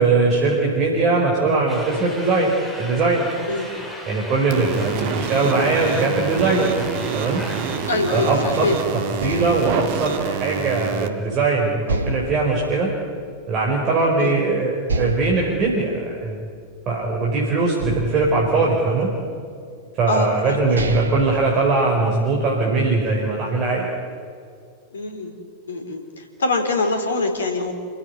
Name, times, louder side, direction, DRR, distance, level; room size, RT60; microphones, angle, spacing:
voice 1, 0.0-2.5 2.8-3.3 4.0-6.7 7.1-7.4 8.1-8.7 8.9-12.9 13.5-16.4 16.8-19.1 20.0-23.9, right 3 dB, 35° right, -2 dB, 5.0 m, -20 dB
sound 1, 1.7-8.0, equal, ahead, 5.5 m, -37 dB
sound 2, 4.5-11.1, right 7 dB, 50° right, 2.0 m, -27 dB
voice 2, 7.9-8.8 14.2-14.4 20.1-20.8 24.9-25.3 25.7-27.7, left 3 dB, 70° left, 5 dB, 3.9 m, -24 dB
sound 3, 8.5-11.3 11.9-13.8 14.2-14.3 14.8-17.2 17.8-19.4 20.1-20.2 20.6-22.4, right 3 dB, 70° right, 1.6 m, -31 dB
29.0 x 16.0 x 9.7 m, 2.3 s
figure-of-eight pair, 90°, 0 cm